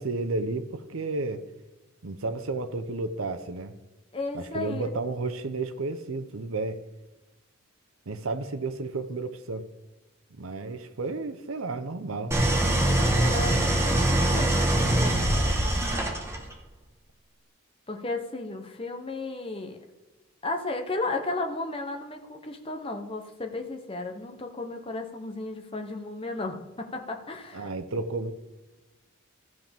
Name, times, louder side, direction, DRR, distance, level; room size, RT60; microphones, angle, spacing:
voice 1, 0.0-1.4 2.0-3.7 4.3-6.8 8.1-9.7 10.3-12.4 27.5-28.3, right 3 dB, 80° right, 0.8 m, -32 dB
voice 2, 4.1-4.9 12.9-15.5 17.9-19.8 20.4-27.7, left 2 dB, 25° left, 0.9 m, -34 dB
Idling, 12.3-16.5, right 1 dB, 15° right, 1.1 m, -23 dB
14.5 x 7.6 x 3.5 m
head